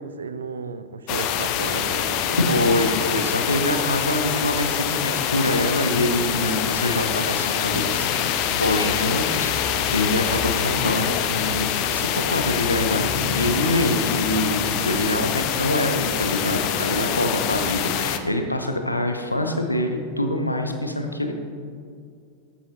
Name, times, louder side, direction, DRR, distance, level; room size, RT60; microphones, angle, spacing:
voice 1, 0.0-2.4, right 5 dB, 70° right, 12 dB, 0.4 m, -34 dB
sound 1, 1.1-18.2, left 9 dB, 40° left, 0.6 m, -25 dB
voice 2, 2.3-21.3, left 1 dB, 85° left, 5 dB, 0.8 m, -25 dB
13.0 x 7.0 x 2.9 m, 2.3 s
figure-of-eight pair, 90°, 0 cm